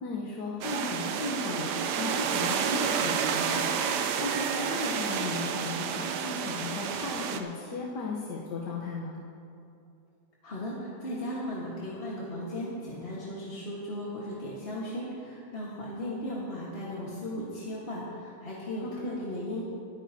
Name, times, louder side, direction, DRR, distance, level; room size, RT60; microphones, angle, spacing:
voice 1, 0.0-3.9 4.2-9.1 18.8-19.2, left 3 dB, 85° left, -3 dB, 1.6 m, -36 dB
sound 1, 0.6-7.4, right 7 dB, 85° right, 1.3 m, -30 dB
voice 2, 10.4-19.6, left 1 dB, 35° left, -7 dB, 1.6 m, -36 dB
23.0 x 9.3 x 2.8 m, 2.7 s
omnidirectional pair, 1.8 m